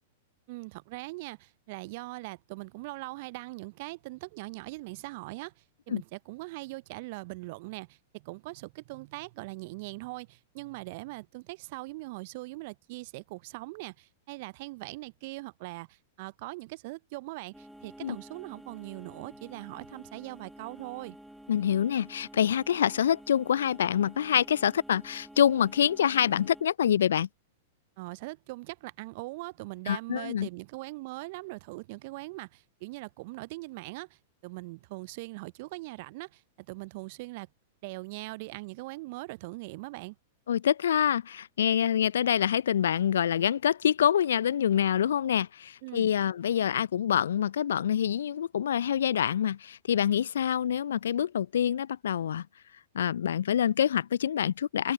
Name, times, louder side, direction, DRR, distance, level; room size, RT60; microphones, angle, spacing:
voice 1, 0.5-21.2 28.0-37.5 37.8-40.2 45.8-46.1, right 23 dB, 50° right, 0.4 m, -41 dB
sound 1, 17.5-26.6, equal, ahead, 2.8 m, -50 dB
voice 2, 21.5-27.3 29.9-30.5 40.5-52.5 52.9-54.9, left 9 dB, 70° left, 0.3 m, -26 dB
figure-of-eight pair, 100°, 0 cm